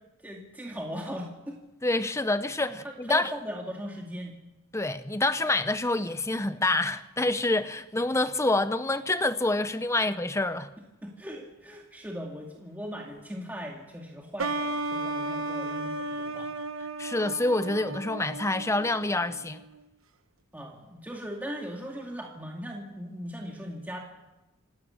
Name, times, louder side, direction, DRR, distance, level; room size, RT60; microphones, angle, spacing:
voice 1, 0.2-1.6 2.7-4.4 11.0-16.5 20.5-24.0, equal, 10° right, 2.2 m, -39 dB
voice 2, 1.8-3.3 4.7-10.7 17.0-19.6, left 2 dB, 15° left, 0.7 m, -27 dB
sound 1, 14.4-19.8, right 2 dB, 70° right, 1.2 m, -34 dB
27.5 x 12.5 x 8.8 m
head